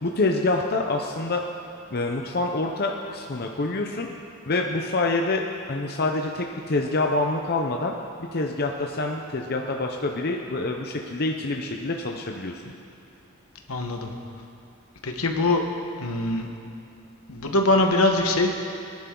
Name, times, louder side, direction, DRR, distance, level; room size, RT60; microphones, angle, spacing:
voice 1, 0.0-1.4 1.9-4.1 4.5-5.4 5.7-7.9 8.2-12.5, left 2 dB, 45° left, 2 dB, 0.8 m, -26 dB
voice 2, 13.7-14.1 15.0-15.6 16.0-16.5 17.3-18.5, left 2 dB, 80° left, 3 dB, 1.4 m, -22 dB
23.0 x 10.5 x 3.9 m, 2.5 s
head